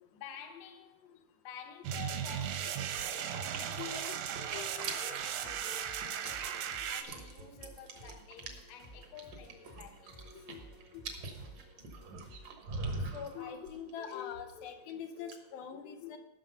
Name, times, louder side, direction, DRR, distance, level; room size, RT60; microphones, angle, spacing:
voice 1, 0.1-2.9 3.3-10.4, left 8 dB, 60° left, 2.0 m, -51 dB
sound 1, 1.8-7.0, right 9 dB, 75° right, 1.8 m, -37 dB
sound 2, 2.4-14.9 15.2-15.3, right 3 dB, 60° right, 2.1 m, -44 dB
voice 2, 2.8-6.7 7.4-7.6 8.0-8.4 9.8-10.0 10.5-10.7 10.9-11.0 13.1-16.2, left 8 dB, 80° left, 2.7 m, -46 dB
sound 3, 5.2-12.5, equal, 30° left, 0.8 m, -54 dB
15.0 x 6.3 x 5.5 m
omnidirectional pair, 4.2 m